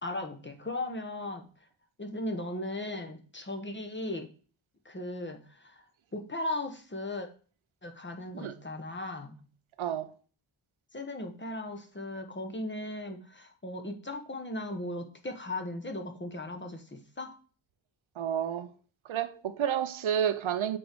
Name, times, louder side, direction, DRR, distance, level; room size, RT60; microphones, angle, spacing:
voice 1, 0.0-1.4 2.0-4.3 4.8-5.8 6.1-7.3 7.8-9.4 10.9-17.3, left 1 dB, 25° left, 1.1 m, -37 dB
voice 2, 9.8-10.1 18.2-18.7 19.1-20.8, right 9 dB, 75° right, 0.8 m, -30 dB
7.1 x 4.7 x 5.1 m
wide cardioid pair, 145°, 48 cm